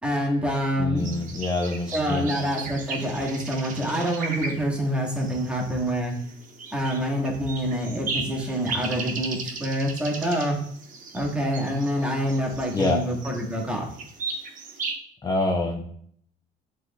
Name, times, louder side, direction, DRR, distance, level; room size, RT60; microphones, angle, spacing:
voice 1, 0.0-1.1 1.9-6.1 6.7-10.6 11.1-13.9, equal, 5° right, -1 dB, 1.2 m, -26 dB
voice 2, 0.8-2.3 12.7-13.0 15.2-15.8, left 2 dB, 20° left, 1 dB, 0.5 m, -26 dB
sound 1, 1.0-14.9, right 4 dB, 50° right, 0.9 m, -37 dB
7.7 x 3.1 x 2.2 m, 0.63 s
cardioid pair, 110°, 17 cm